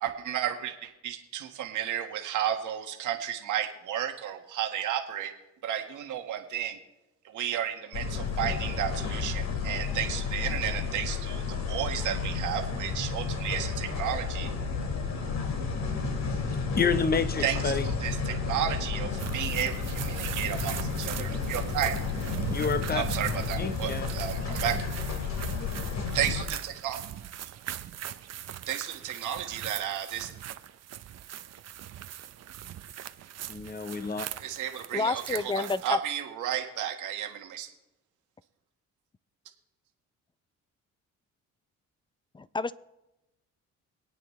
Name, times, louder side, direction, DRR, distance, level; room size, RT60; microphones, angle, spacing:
voice 1, 0.0-5.3 5.6-6.8 7.2-14.5 17.4-22.0 22.9-24.8 26.1-27.0 28.7-30.3 34.4-37.7, right 10 dB, 80° right, 4 dB, 1.6 m, -33 dB
sound 1, 7.9-26.4, left 5 dB, 65° left, 2.3 m, -32 dB
voice 2, 16.7-17.9 22.5-23.0 23.6-24.1 33.5-34.3, left 5 dB, 30° left, 11 dB, 1.0 m, -28 dB
sound 2, 19.2-35.9, right 11 dB, 60° right, 0.8 m, -40 dB
voice 3, 34.9-36.0 42.3-42.7, left 3 dB, 15° left, 16 dB, 0.5 m, -29 dB
26.0 x 9.1 x 3.2 m, 0.95 s
cardioid pair, 90°, 30 cm